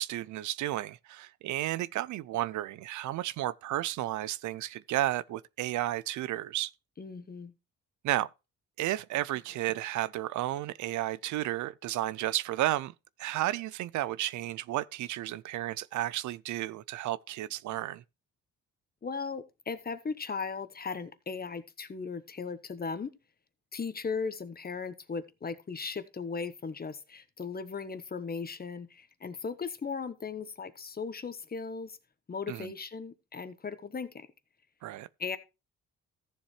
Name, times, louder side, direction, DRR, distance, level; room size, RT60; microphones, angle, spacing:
voice 1, 0.0-6.7 8.0-8.3 8.8-12.9 13.2-18.0 32.5-32.7 34.8-35.1, right 14 dB, 70° right, 0.5 m, -32 dB
voice 2, 7.0-7.5 19.0-23.1 23.7-32.0 32.3-34.3 35.2-35.4, left 5 dB, 30° left, 1.2 m, -37 dB
14.5 x 7.2 x 3.2 m
cardioid pair, 90°, 30 cm